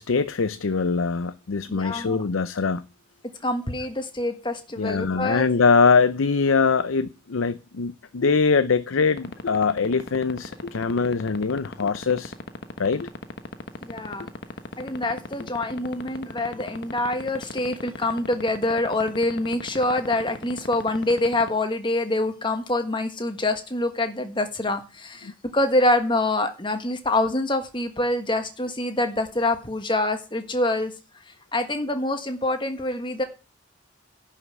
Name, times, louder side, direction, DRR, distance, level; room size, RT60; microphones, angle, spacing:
voice 1, 0.0-2.8 4.8-12.3 12.8-13.1 25.2-25.3, left 5 dB, 80° left, 0.6 m, -22 dB
voice 2, 1.7-2.2 3.4-5.5 13.8-14.3 14.8-30.9 31.5-33.2, left 2 dB, 25° left, 1.5 m, -25 dB
sound 1, 9.2-21.5, left 3 dB, 55° left, 1.1 m, -33 dB
11.0 x 5.7 x 8.1 m
head